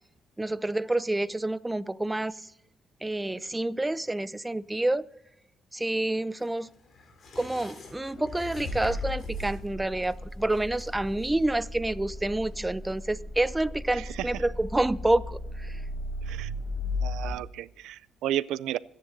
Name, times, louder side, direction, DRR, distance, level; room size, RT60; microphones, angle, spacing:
voice 1, 0.4-2.3 3.0-5.0 5.7-6.7 7.4-15.8, right 1 dB, 10° right, 18 dB, 0.5 m, -28 dB
sound 1, 6.3-13.4 13.7-13.8, left 3 dB, 55° left, 3.4 m, -52 dB
Accelerating revving vroom, 7.8-17.4, left 1 dB, 70° left, 4.1 m, -36 dB
voice 2, 13.9-14.4 16.3-16.5 17.0-18.8, right 12 dB, 90° right, 18 dB, 0.4 m, -33 dB
25.5 x 10.5 x 2.7 m, 0.83 s
cardioid pair, 90°, 0 cm